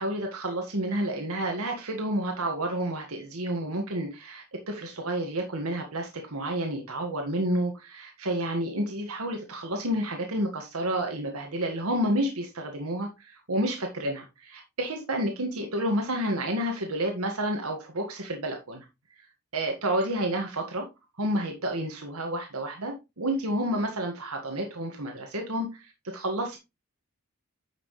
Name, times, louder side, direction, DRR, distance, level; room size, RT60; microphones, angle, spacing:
voice 1, 0.0-18.9 19.5-20.9 21.2-26.6, right 1 dB, 85° right, 1.7 m, -30 dB
9.9 x 6.1 x 3.2 m
head